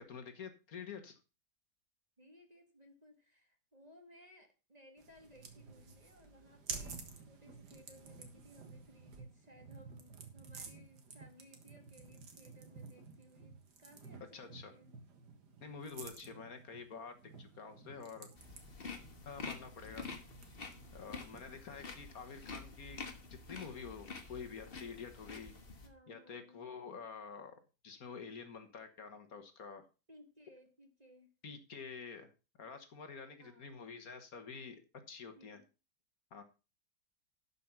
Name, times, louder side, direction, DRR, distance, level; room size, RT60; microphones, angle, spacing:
voice 1, 0.1-1.2 14.3-14.7 15.6-18.3 19.3-20.1 20.9-23.0 23.3-25.5 26.1-27.5 27.8-29.9 31.4-32.3 32.6-34.8 35.1-35.6 36.3-36.4, left 5 dB, 60° left, 1.7 m, -48 dB
voice 2, 2.2-14.9 16.2-16.6 25.8-26.6 30.1-31.3 33.4-33.8 35.3-35.7, equal, 25° right, 1.6 m, -61 dB
sound 1, 5.0-21.6, right 4 dB, 75° right, 2.2 m, -52 dB
sound 2, 18.4-25.9, left 4 dB, 35° left, 1.5 m, -48 dB
11.5 x 5.5 x 5.9 m
omnidirectional pair, 1.8 m